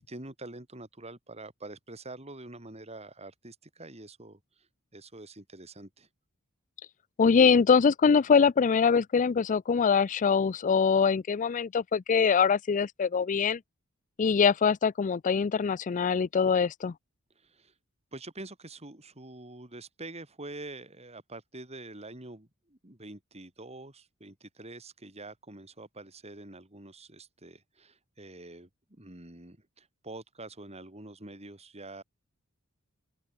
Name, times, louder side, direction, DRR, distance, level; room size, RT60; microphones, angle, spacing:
voice 1, 0.1-6.1 17.4-17.7 18.1-32.0, right 2 dB, 30° right, 3.6 m, -46 dB
voice 2, 7.2-13.6 14.2-16.9, left 6 dB, 35° left, 0.4 m, -23 dB
open air
head